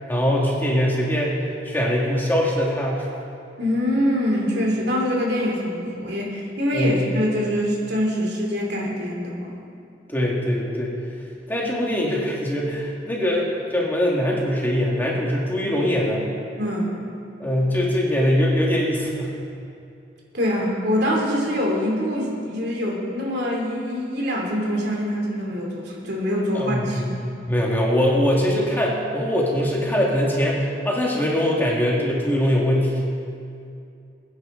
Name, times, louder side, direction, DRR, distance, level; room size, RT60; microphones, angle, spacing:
voice 1, 0.1-3.1 6.7-7.0 10.1-11.0 11.5-16.2 17.4-19.3 26.5-27.0 27.5-33.0, equal, 10° left, -3 dB, 2.0 m, -22 dB
voice 2, 3.6-9.5 16.6-17.0 20.3-27.2, equal, 65° right, -2 dB, 3.0 m, -24 dB
22.0 x 9.8 x 3.9 m, 2.5 s
head